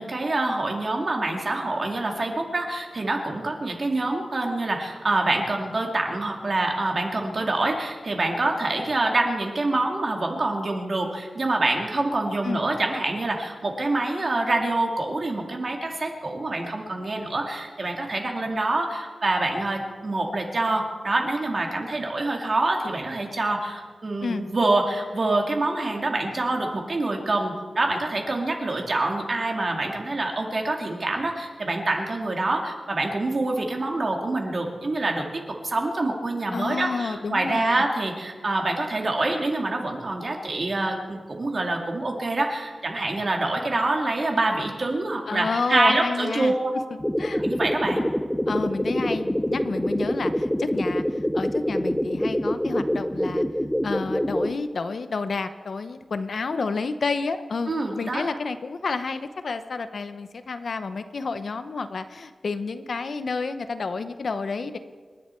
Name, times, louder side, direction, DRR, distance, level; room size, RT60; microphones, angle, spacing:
voice 1, 0.0-46.7 47.3-48.1 57.7-58.2, right 2 dB, 45° right, 2 dB, 2.3 m, -26 dB
voice 2, 36.5-37.9 45.3-46.8 47.2-47.4 48.5-53.4 53.8-57.7 58.0-64.8, left 4 dB, 60° left, 10 dB, 0.8 m, -30 dB
sound 1, 47.0-54.6, equal, 5° left, 0.5 m, -25 dB
27.5 x 11.0 x 4.5 m, 1.5 s
wide cardioid pair, 150°, 0 cm